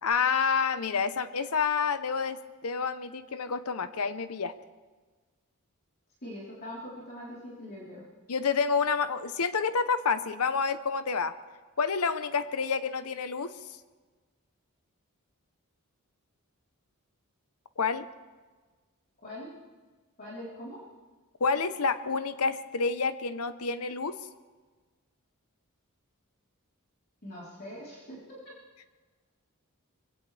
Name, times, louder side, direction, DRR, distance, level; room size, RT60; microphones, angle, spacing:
voice 1, 0.0-4.5 8.3-11.3 11.8-13.5 17.8-18.1 21.4-24.1, left 5 dB, 85° left, 12 dB, 0.9 m, -28 dB
voice 2, 6.2-8.0 19.2-19.5 20.2-20.8 27.2-28.4, left 1 dB, 45° left, -7 dB, 3.8 m, -42 dB
23.5 x 16.5 x 3.4 m, 1.4 s
head